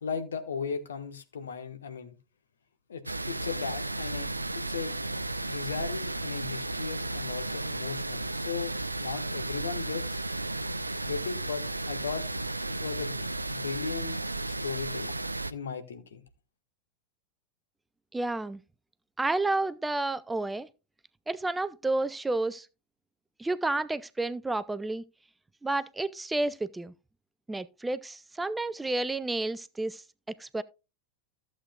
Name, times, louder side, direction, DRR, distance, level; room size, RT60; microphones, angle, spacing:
voice 1, 0.0-2.2 2.9-5.0 5.4-8.7 9.0-10.2 11.0-12.3 12.7-15.2 15.5-16.2, left 6 dB, 65° left, 1.2 m, -37 dB
sound 1, 3.1-15.5, right 2 dB, 85° right, 0.5 m, -34 dB
voice 2, 18.1-18.6 19.2-20.7 21.3-22.7 23.4-25.0 25.6-26.9 27.5-30.0 30.4-30.6, right 2 dB, 10° right, 0.4 m, -30 dB
14.0 x 7.6 x 2.3 m
figure-of-eight pair, 90°, 0 cm